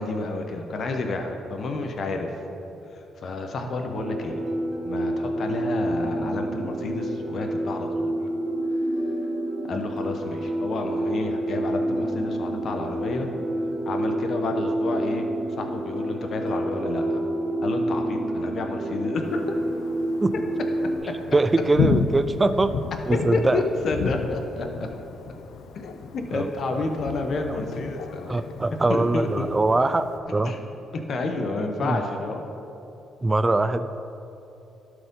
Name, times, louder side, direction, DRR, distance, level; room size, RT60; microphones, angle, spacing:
voice 1, 0.0-2.3 3.2-4.4 4.8-8.1 9.7-13.3 13.9-15.3 15.6-17.2 17.6-19.5 23.3-24.9 26.1-28.4 28.9-29.5 30.4-30.6 30.9-32.4, left 3 dB, 55° left, 4 dB, 1.0 m, -30 dB
sound 1, 4.0-21.0, right 1 dB, 80° right, 1.3 m, -28 dB
Thunder, 19.2-30.2, left 5 dB, 75° left, 0.5 m, -32 dB
voice 2, 21.3-22.8 23.1-23.6 26.3-26.9 28.3-30.5 31.8-32.0 33.2-34.0, right 2 dB, 20° right, 11 dB, 0.3 m, -23 dB
12.0 x 4.9 x 5.4 m, 2.9 s
cardioid pair, 90°, 0 cm